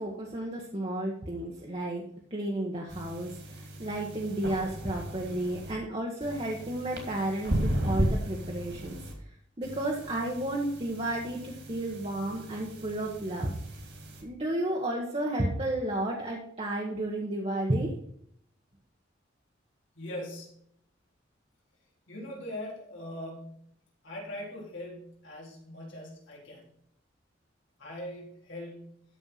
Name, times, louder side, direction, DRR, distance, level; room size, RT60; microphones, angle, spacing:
voice 1, 0.0-2.0 2.3-9.0 9.6-13.5 14.2-17.9, right 1 dB, 30° right, -1 dB, 1.3 m, -32 dB
sound 1, 2.9-5.7 6.2-9.1 9.6-14.2, equal, 60° right, 2.8 m, -36 dB
voice 2, 20.0-20.6 22.1-23.6 24.0-26.7 27.8-29.0, left 1 dB, 80° left, -3 dB, 3.8 m, -41 dB
13.0 x 4.5 x 5.7 m, 0.69 s
head